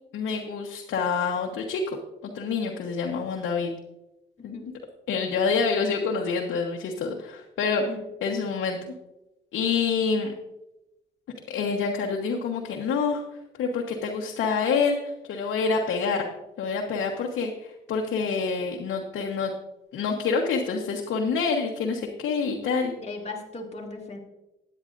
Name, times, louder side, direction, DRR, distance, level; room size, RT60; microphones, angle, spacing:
voice 1, 0.1-3.7 4.4-4.7 5.1-7.8 8.2-8.8 9.5-10.3 11.5-13.2 13.6-15.0 15.3-16.2 16.6-19.5 19.9-22.9, left 5 dB, 75° left, 0 dB, 1.3 m, -27 dB
voice 2, 23.0-24.2, left 3 dB, 35° left, 0 dB, 2.3 m, -37 dB
13.5 x 9.8 x 2.6 m, 0.92 s
cardioid pair, 90°, 20 cm